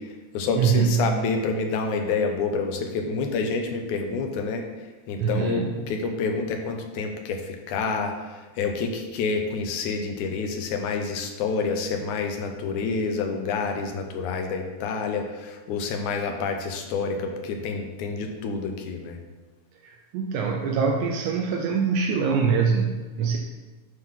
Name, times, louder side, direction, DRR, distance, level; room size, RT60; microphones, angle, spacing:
voice 1, 0.0-19.2, left 4 dB, 80° left, 4 dB, 2.3 m, -28 dB
voice 2, 0.6-1.1 5.2-5.7 19.8-23.4, right 6 dB, 85° right, 2 dB, 2.1 m, -24 dB
9.8 x 3.7 x 5.8 m, 1.3 s
omnidirectional pair, 3.5 m